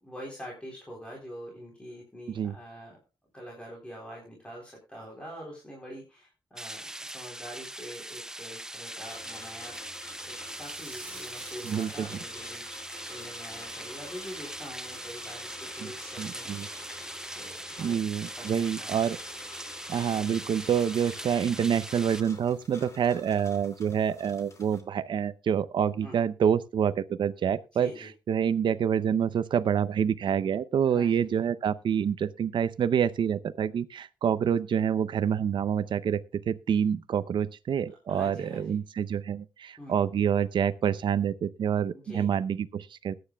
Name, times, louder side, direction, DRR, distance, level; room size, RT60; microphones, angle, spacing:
voice 1, 0.0-2.9 3.3-9.8 10.2-16.5 17.4-18.0 18.4-18.9 20.2-20.3 26.0-26.2 27.7-28.1 30.9-31.3 38.1-38.8 39.8-40.0 41.9-42.3, equal, 15° left, 3.7 m, -45 dB
sound 1, 6.6-22.2, right 1 dB, 5° right, 0.6 m, -41 dB
sound 2, 9.0-24.8, left 2 dB, 35° left, 2.5 m, -49 dB
sound 3, 10.4-15.4 15.7-15.9 16.3-16.4, right 3 dB, 25° right, 5.9 m, -53 dB
voice 2, 11.6-12.1 15.8-15.9 16.2-16.7 17.8-19.2 19.9-43.2, right 8 dB, 65° right, 0.6 m, -27 dB
20.5 x 9.5 x 2.3 m
wide cardioid pair, 115°, 9 cm